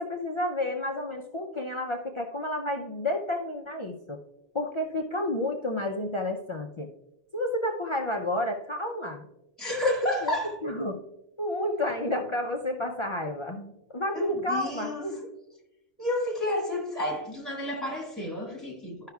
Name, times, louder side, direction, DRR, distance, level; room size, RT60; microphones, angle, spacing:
voice 1, 0.0-4.2 4.5-6.9 7.3-9.3 9.7-11.0 11.4-15.3, left 1 dB, 40° left, 0.5 m, -30 dB
voice 2, 9.6-10.5 14.1-15.0 16.0-19.1, left 1 dB, ahead, 1.7 m, -31 dB
12.5 x 5.6 x 2.3 m
omnidirectional pair, 1.2 m